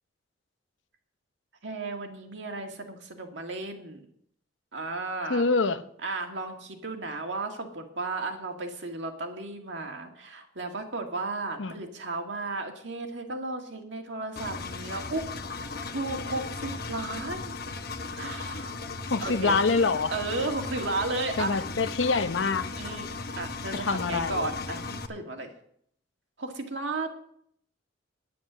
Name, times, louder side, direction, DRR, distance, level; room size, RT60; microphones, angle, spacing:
voice 1, 1.6-4.1 4.7-5.4 6.0-15.3 15.8-17.5 18.1-18.8 19.2-19.6 20.1-21.6 22.8-23.1 23.4-25.5 26.4-27.1, right 2 dB, 70° right, 1.9 m, -34 dB
voice 2, 5.2-5.8 11.6-11.8 19.1-20.1 21.4-22.7 23.7-24.5, left 4 dB, 80° left, 0.8 m, -25 dB
Engine, 14.4-25.1, left 4 dB, 55° left, 1.0 m, -37 dB
9.8 x 9.6 x 6.2 m
head